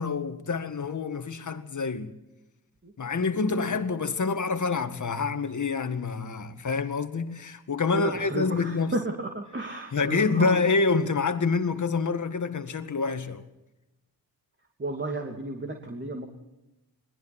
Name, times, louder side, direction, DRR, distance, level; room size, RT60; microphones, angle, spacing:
voice 1, 0.0-2.1 3.0-9.0 9.9-13.5, left 4 dB, 50° left, 2.0 m, -27 dB
voice 2, 2.8-3.7 7.9-10.6 14.8-16.2, right 2 dB, 30° right, 2.8 m, -33 dB
28.0 x 21.0 x 4.4 m
cardioid pair, 85°, 37 cm